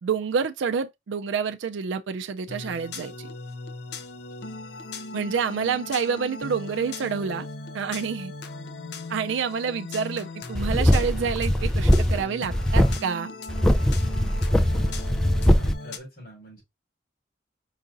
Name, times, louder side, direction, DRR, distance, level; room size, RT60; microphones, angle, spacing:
voice 1, 0.0-3.3 5.1-7.5 7.7-8.3 9.1-13.3, right 6 dB, 85° right, 0.4 m, -28 dB
sound 1, 2.5-16.0, left 3 dB, 65° left, 0.5 m, -38 dB
sound 2, 10.5-12.2 12.5-13.0 13.5-15.7, equal, 5° left, 0.3 m, -21 dB
voice 2, 15.6-16.6, equal, 50° left, 2.9 m, -45 dB
4.8 x 2.5 x 3.9 m
head